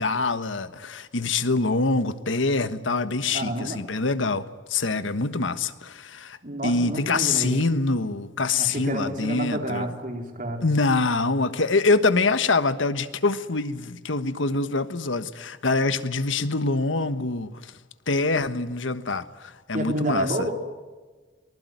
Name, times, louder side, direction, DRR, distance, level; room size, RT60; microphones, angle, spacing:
voice 1, 0.0-9.9 10.6-17.8 18.1-20.5, left 3 dB, 85° left, 12 dB, 1.4 m, -25 dB
voice 2, 3.3-3.8 6.4-7.6 8.6-10.6 19.7-20.5, right 1 dB, 40° right, 3 dB, 4.2 m, -29 dB
23.5 x 20.5 x 9.4 m, 1.3 s
head